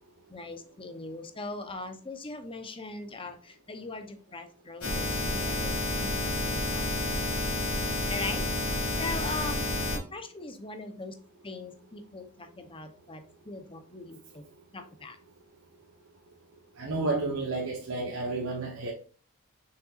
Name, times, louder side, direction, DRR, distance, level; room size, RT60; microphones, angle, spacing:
voice 1, 0.3-6.9 8.1-8.5 9.0-9.6 9.9-11.1 11.4-14.4 14.7-15.2, left 3 dB, 25° left, 0.8 m, -40 dB
sound 1, 4.8-10.0, left 1 dB, 90° left, 2.5 m, -30 dB
voice 2, 16.8-18.9, right 3 dB, 65° right, 1.1 m, -31 dB
6.3 x 5.9 x 2.5 m
head